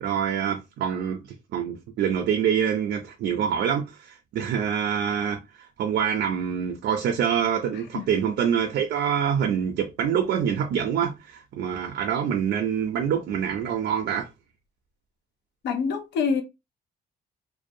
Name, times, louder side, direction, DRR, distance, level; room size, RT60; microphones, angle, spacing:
voice 1, 0.0-1.2 1.5-14.3, right 8 dB, 80° right, 0.5 m, -26 dB
voice 2, 15.6-16.4, left 5 dB, 75° left, 0.7 m, -25 dB
2.6 x 2.1 x 2.6 m
cardioid pair, 170°, 18 cm